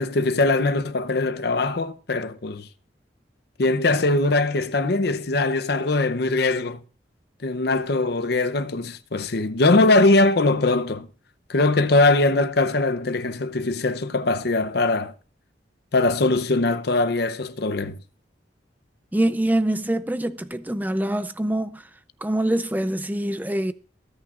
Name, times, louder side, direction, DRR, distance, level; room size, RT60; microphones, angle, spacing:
voice 1, 0.0-2.7 3.6-6.8 7.4-11.1 11.5-15.1 15.9-18.0, left 2 dB, 60° left, 0.7 m, -21 dB
voice 2, 19.1-21.9 22.2-23.7, right 1 dB, 10° right, 0.5 m, -24 dB
23.0 x 8.7 x 2.5 m
head